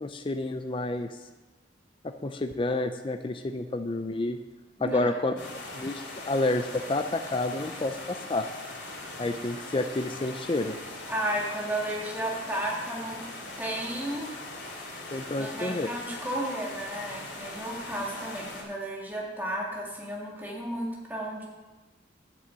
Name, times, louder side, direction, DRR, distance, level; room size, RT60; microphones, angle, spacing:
voice 1, 0.0-1.1 2.0-4.4 4.8-5.3 5.7-8.5 9.2-10.8 15.1-15.9, left 2 dB, 30° left, 7 dB, 0.5 m, -29 dB
voice 2, 4.8-5.2 11.1-13.2 13.6-14.3 15.4-21.4, right 1 dB, 10° right, -3 dB, 2.1 m, -33 dB
sound 1, 5.4-18.6, left 2 dB, 65° left, 3.4 m, -41 dB
9.4 x 6.8 x 7.6 m, 1.2 s
head